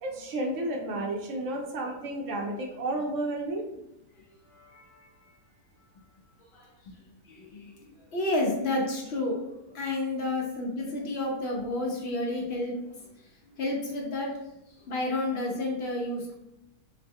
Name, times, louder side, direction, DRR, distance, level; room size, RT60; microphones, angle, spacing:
voice 1, 0.0-3.6, right 1 dB, 70° right, 1 dB, 0.8 m, -32 dB
voice 2, 4.5-4.9 6.5-6.9 7.3-7.7 8.1-9.4 9.7-12.8 13.5-14.3 14.9-16.3, left 2 dB, 65° left, -1 dB, 0.6 m, -30 dB
3.0 x 2.1 x 3.4 m, 0.85 s
omnidirectional pair, 1.7 m